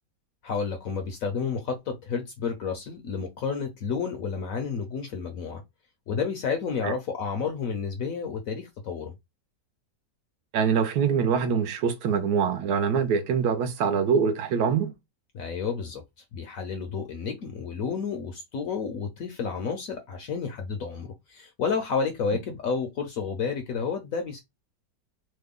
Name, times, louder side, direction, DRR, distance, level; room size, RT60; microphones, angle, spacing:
voice 1, 0.4-5.6 6.1-9.1 15.3-16.0 16.3-24.4, left 5 dB, 65° left, 0.9 m, -31 dB
voice 2, 10.5-14.9, right 6 dB, 70° right, 1.1 m, -24 dB
3.1 x 2.2 x 3.5 m
omnidirectional pair, 1.9 m